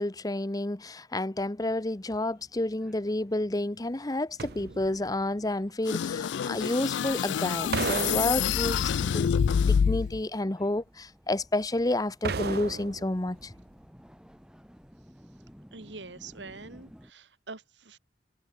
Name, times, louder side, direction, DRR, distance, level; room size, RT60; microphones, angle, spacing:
voice 1, 0.0-9.3 9.6-13.5, left 1 dB, 20° left, 0.9 m, -30 dB
sound 1, 1.6-17.1, equal, 5° right, 3.5 m, -56 dB
sound 2, 4.4-5.2 7.7-9.0 12.2-13.3 13.6-13.7, right 4 dB, 60° right, 0.7 m, -34 dB
sound 3, 5.9-10.2, left 7 dB, 85° left, 0.3 m, -27 dB
voice 2, 15.7-18.0, right 3 dB, 90° right, 2.8 m, -45 dB
head